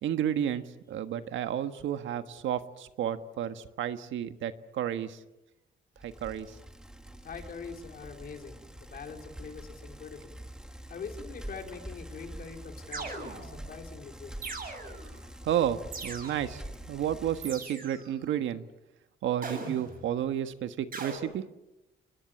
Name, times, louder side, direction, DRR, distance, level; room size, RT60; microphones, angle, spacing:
voice 1, 0.0-5.2 6.0-6.6 15.4-16.6 16.9-18.6 19.2-21.4, right 10 dB, 85° right, 10 dB, 1.5 m, -31 dB
Bicycle, 6.0-17.7, right 1 dB, 5° right, 1.7 m, -46 dB
voice 2, 7.2-10.3 10.9-14.3, left 5 dB, 50° left, 4 dB, 4.1 m, -43 dB
sound 1, 12.9-13.6 14.4-15.1 15.9-16.6 17.4-18.1 19.4-20.0 20.9-21.2, right 4 dB, 50° right, 7.7 m, -40 dB
29.5 x 21.0 x 8.7 m, 0.99 s
cardioid pair, 135°, 19 cm